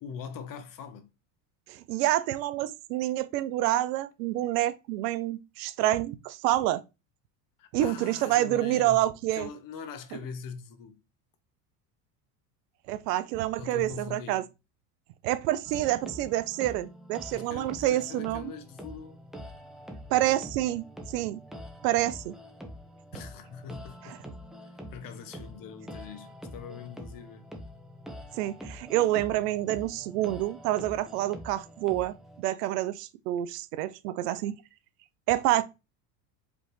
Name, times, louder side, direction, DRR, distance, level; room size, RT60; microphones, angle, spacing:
voice 1, 0.0-1.1 7.6-11.0 13.6-14.5 17.3-19.2 23.1-24.2 24.9-27.5, left 6 dB, 45° left, 1.0 m, -42 dB
voice 2, 1.7-6.8 7.7-9.5 12.9-14.4 15.2-18.5 20.1-21.4 21.8-22.3 24.1-24.2 28.3-34.6 35.3-35.6, right 14 dB, 75° right, 0.6 m, -28 dB
sound 1, 15.6-32.4, equal, ahead, 0.9 m, -45 dB
5.1 x 3.2 x 3.1 m
supercardioid pair, 95°, 48 cm